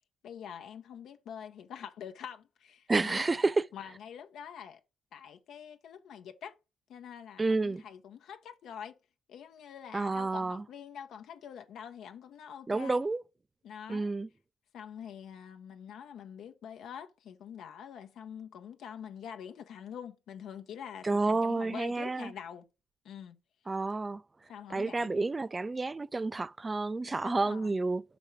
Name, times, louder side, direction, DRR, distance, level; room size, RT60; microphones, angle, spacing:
voice 1, 0.2-3.3 3.7-4.8 5.1-6.5 6.9-8.9 9.3-13.0 13.6-14.1 14.7-22.6 23.0-23.4 24.5-25.2 27.2-27.7, left 8 dB, 75° left, 0.7 m, -45 dB
voice 2, 2.9-3.6 7.4-7.8 9.9-10.6 12.7-13.2 13.9-14.3 21.0-22.3 23.7-24.2 24.7-28.0, right 3 dB, 25° right, 0.3 m, -30 dB
5.5 x 5.1 x 4.5 m
cardioid pair, 90°, 0 cm